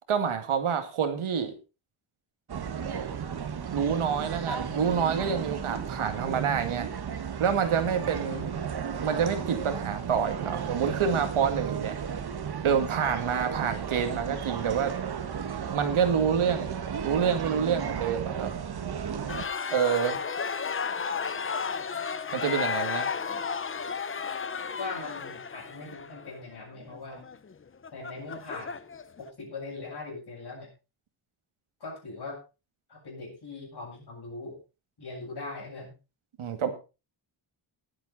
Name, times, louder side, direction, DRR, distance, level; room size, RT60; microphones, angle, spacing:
voice 1, 0.1-1.5 2.8-3.1 3.7-6.9 7.4-8.5 9.0-12.0 12.6-15.0 15.7-18.5 19.7-20.2 22.3-23.1 36.4-36.7, right 7 dB, 85° right, 7 dB, 2.2 m, -27 dB
sound 1, 2.5-19.5, right 7 dB, 50° right, 1.5 m, -34 dB
sound 2, 19.3-29.2, left 6 dB, 25° left, 0.7 m, -33 dB
voice 2, 24.8-27.3 27.9-28.8 29.2-30.7 31.8-32.4 32.9-34.6 35.0-35.9, left 3 dB, 50° left, -1 dB, 7.9 m, -40 dB
19.0 x 8.0 x 4.1 m, 0.31 s
wide cardioid pair, 160°, 48 cm